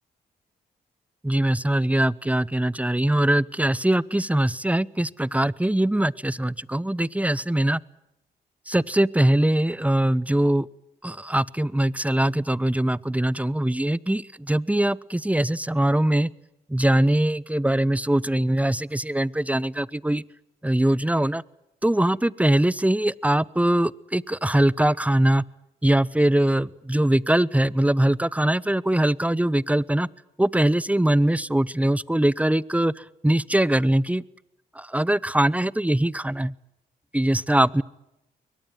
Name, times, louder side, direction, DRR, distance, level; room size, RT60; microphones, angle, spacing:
voice 1, 1.2-7.8 8.7-10.7 11.0-16.3 16.7-20.2 20.6-21.4 21.8-25.4 25.8-30.1 30.4-34.2 34.8-36.5 37.1-37.8, right 1 dB, 5° right, 22 dB, 0.8 m, -22 dB
23.0 x 19.5 x 9.2 m, 0.90 s
supercardioid pair, 45°, 20 cm